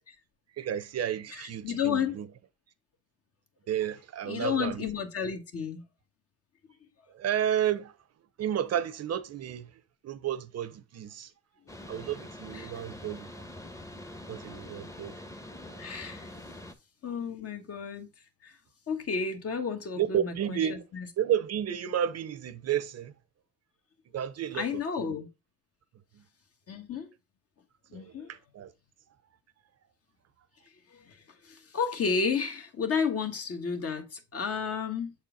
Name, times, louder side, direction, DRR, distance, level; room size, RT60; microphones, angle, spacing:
voice 1, 0.6-2.3 3.7-4.9 7.1-7.9 8.4-9.7 10.0-11.3 11.9-13.4 14.3-15.1 15.7-15.8 20.0-20.8 21.2-23.1 24.1-25.2 26.1-26.2 27.9-28.7, right 10 dB, 55° right, 0.7 m, -32 dB
voice 2, 1.3-2.2 4.3-5.8 12.5-12.7 15.8-16.3 17.0-18.1 18.4-18.5 18.9-21.1 24.5-25.3 26.7-27.1 27.9-28.3 30.9-31.2 31.4-35.1, left 6 dB, 50° left, 1.5 m, -32 dB
sound 1, 11.7-16.7, left 1 dB, 10° left, 0.9 m, -44 dB
7.1 x 4.3 x 3.8 m
cardioid pair, 90°, 30 cm